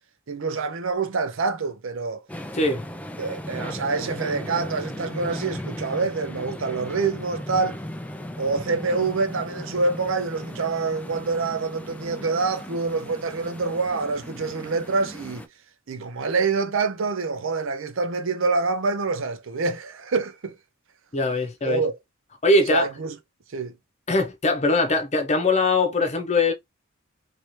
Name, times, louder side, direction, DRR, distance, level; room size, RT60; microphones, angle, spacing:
voice 1, 0.3-2.2 3.2-7.8 8.4-15.5 15.9-20.5 21.7-22.0 22.7-23.2 23.5-23.7, right 4 dB, 65° right, 0.6 m, -26 dB
sound 1, 2.3-15.5, left 1 dB, 5° left, 0.3 m, -37 dB
voice 2, 2.5-2.9 21.1-21.8 22.4-22.9 24.1-26.5, left 2 dB, 30° left, 0.8 m, -21 dB
3.1 x 2.8 x 3.1 m
head